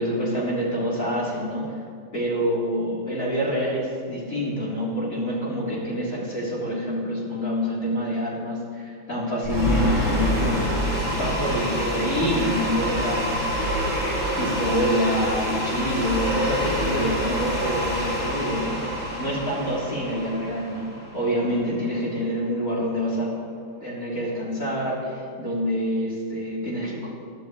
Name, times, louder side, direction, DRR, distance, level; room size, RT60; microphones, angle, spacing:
voice 1, 0.0-1.8 2.1-23.3 23.8-27.1, equal, 40° left, -7 dB, 4.1 m, -27 dB
sound 1, 9.4-21.6, equal, 10° left, 4.0 m, -27 dB
22.5 x 12.5 x 3.3 m, 2.3 s
omnidirectional pair, 2.1 m